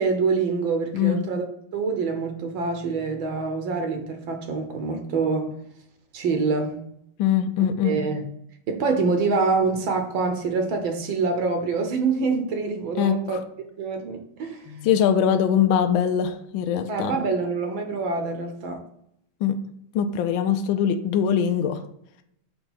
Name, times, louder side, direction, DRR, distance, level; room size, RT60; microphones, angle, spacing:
voice 1, 0.0-5.5 6.1-6.8 7.8-8.2 8.7-13.4 13.8-14.6 16.9-18.8, right 4 dB, 70° right, 5 dB, 1.5 m, -25 dB
voice 2, 7.2-8.0 13.0-13.4 14.7-17.2 19.4-19.6 19.9-21.8, left 8 dB, 75° left, 8 dB, 1.3 m, -22 dB
5.9 x 3.5 x 5.5 m, 0.74 s
omnidirectional pair, 2.3 m